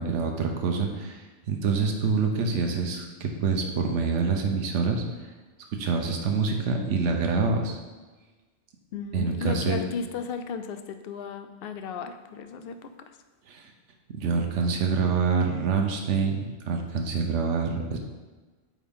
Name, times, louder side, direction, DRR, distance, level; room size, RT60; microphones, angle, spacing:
voice 1, 0.0-5.0 5.7-7.8 9.1-9.8 13.5-13.7 14.1-18.0, right 5 dB, 75° right, 3 dB, 1.1 m, -26 dB
voice 2, 8.9-13.2, left 6 dB, 60° left, 8 dB, 0.6 m, -35 dB
8.5 x 3.6 x 3.6 m, 1.3 s
omnidirectional pair, 1.2 m